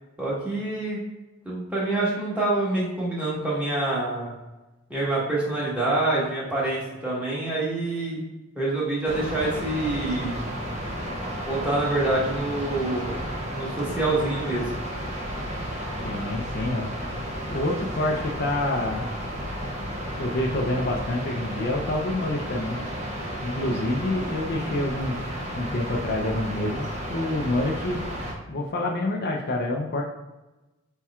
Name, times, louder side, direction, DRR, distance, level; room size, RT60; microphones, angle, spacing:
voice 1, 0.2-1.0 1.4-4.3 4.9-8.2 8.5-10.4 11.5-14.7, right 2 dB, 5° right, -7 dB, 1.2 m, -26 dB
sound 1, 9.1-28.3, equal, 35° right, 0.6 m, -33 dB
voice 2, 16.0-16.9 17.5-19.1 20.2-22.8 23.4-25.2 25.5-28.0 28.5-30.0, left 1 dB, 50° left, 0 dB, 0.5 m, -27 dB
4.4 x 4.3 x 2.3 m, 1.1 s
head